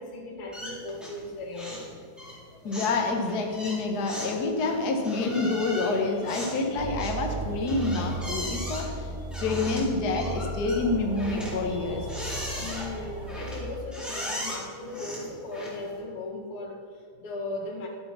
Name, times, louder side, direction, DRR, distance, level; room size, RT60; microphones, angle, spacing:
voice 1, 0.0-2.1 12.6-17.9, left 2 dB, 80° left, 0 dB, 2.6 m, -37 dB
sound 1, 0.5-1.3 1.5-1.9 2.2-16.0, equal, ahead, 3.7 m, -38 dB
voice 2, 2.6-9.1 9.4-12.5, left 3 dB, 55° left, 2 dB, 1.6 m, -28 dB
sound 2, 6.8-13.6, right 2 dB, 75° right, 2.3 m, -35 dB
12.5 x 8.5 x 6.0 m, 2.1 s
omnidirectional pair, 2.4 m